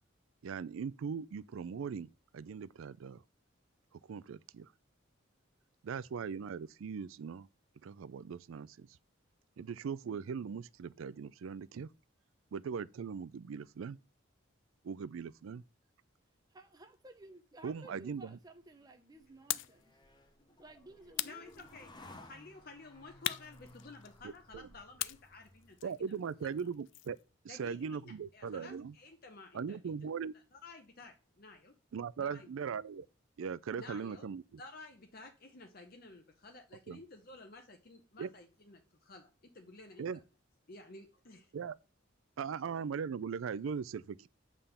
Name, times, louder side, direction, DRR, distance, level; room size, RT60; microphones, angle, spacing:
voice 1, 0.4-2.1 2.3-3.2 3.9-4.7 5.8-7.5 7.8-8.9 9.6-11.9 12.5-14.0 14.8-15.6 17.6-18.4 24.2-24.7 25.8-27.2 27.4-28.9 29.5-30.3 31.9-33.1 33.4-34.6 36.9-37.0 38.2-38.3 40.0-40.2 41.5-41.8 42.4-44.3, right 6 dB, 85° right, 0.4 m, -40 dB
voice 2, 16.5-20.0 20.6-21.5, right 2 dB, 20° right, 0.7 m, -55 dB
sound 1, 18.6-26.0, left 1 dB, 20° left, 0.8 m, -58 dB
sound 2, 19.5-19.8 21.1-22.1 23.2-24.4 25.0-27.2, left 15 dB, 65° left, 0.3 m, -40 dB
voice 3, 21.2-21.9 22.2-26.5 27.5-29.9 30.5-31.7 32.2-32.5 33.8-34.3 34.6-40.1 40.7-41.5, left 3 dB, 45° left, 1.0 m, -53 dB
8.8 x 3.7 x 6.9 m
head